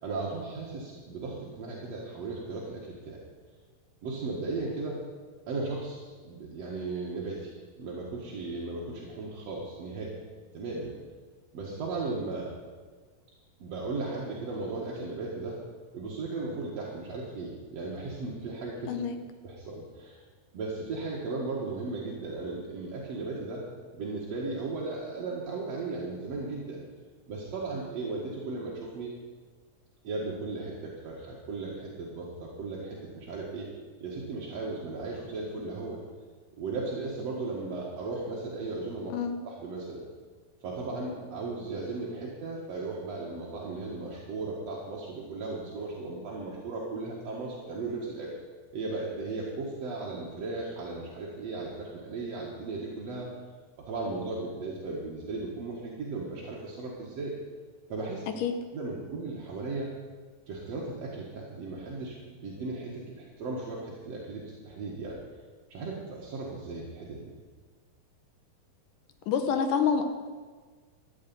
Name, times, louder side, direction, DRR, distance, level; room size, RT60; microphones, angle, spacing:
voice 1, 0.0-3.2 4.0-5.0 5.5-10.2 10.5-10.9 11.5-12.5 13.6-15.6 15.9-18.9 19.4-20.2 20.5-23.6 23.9-26.8 27.3-29.1 30.0-33.7 34.0-36.0 36.6-39.1 39.4-40.1 40.6-48.3 48.7-53.3 53.9-57.3 57.9-58.2 58.7-59.9 60.5-65.2 65.7-67.3, right 3 dB, 50° right, -4 dB, 2.3 m, -36 dB
voice 2, 69.3-70.0, left 7 dB, 70° left, 7 dB, 2.1 m, -27 dB
13.0 x 8.1 x 8.9 m, 1.5 s
omnidirectional pair, 4.6 m